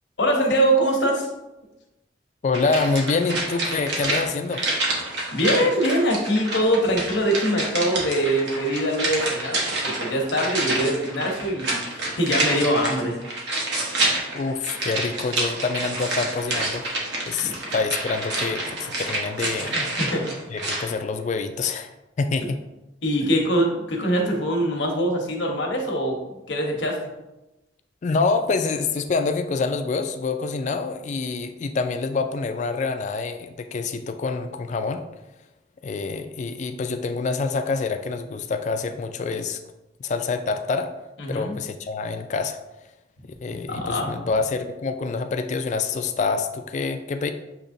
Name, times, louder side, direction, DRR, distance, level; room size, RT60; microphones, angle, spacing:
voice 1, 0.2-1.3 5.3-13.1 17.4-17.5 19.7-20.3 23.0-27.0 41.2-41.5 43.7-44.2, equal, 75° left, 1 dB, 0.9 m, -23 dB
voice 2, 2.4-4.6 14.3-16.9 17.3-19.8 20.5-21.9 22.2-22.6 28.0-35.0 35.8-39.6 40.0-40.9 41.3-42.6 43.4-47.3, left 4 dB, 40° left, 8 dB, 0.3 m, -26 dB
sound 1, 2.5-20.9 21.2-21.3, right 2 dB, 70° right, 1.0 m, -28 dB
6.6 x 2.9 x 2.6 m, 0.98 s
head